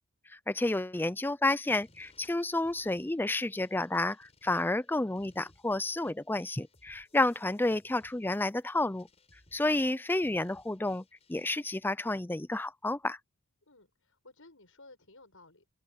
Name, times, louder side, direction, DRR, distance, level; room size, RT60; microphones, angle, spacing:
voice 1, 0.5-9.1 9.5-13.2, left 2 dB, 10° left, 0.4 m, -30 dB
sound 1, 1.7-11.8, left 2 dB, 30° left, 6.0 m, -64 dB
voice 2, 13.7-15.7, left 2 dB, 65° left, 6.9 m, -56 dB
open air
head